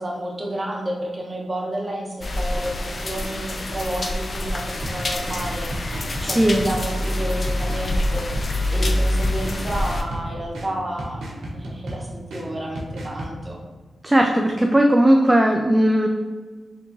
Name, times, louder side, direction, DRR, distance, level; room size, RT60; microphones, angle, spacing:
voice 1, 0.0-13.6, right 1 dB, 40° right, -1 dB, 1.2 m, -31 dB
sound 1, 2.2-10.0, left 1 dB, 50° left, 0.5 m, -26 dB
sound 2, 4.8-13.3, right 1 dB, 85° right, 0.9 m, -35 dB
voice 2, 6.2-6.6 14.0-16.1, right 1 dB, 20° right, 2 dB, 0.4 m, -17 dB
3.8 x 3.5 x 3.0 m, 1.4 s
supercardioid pair, 45°, 0 cm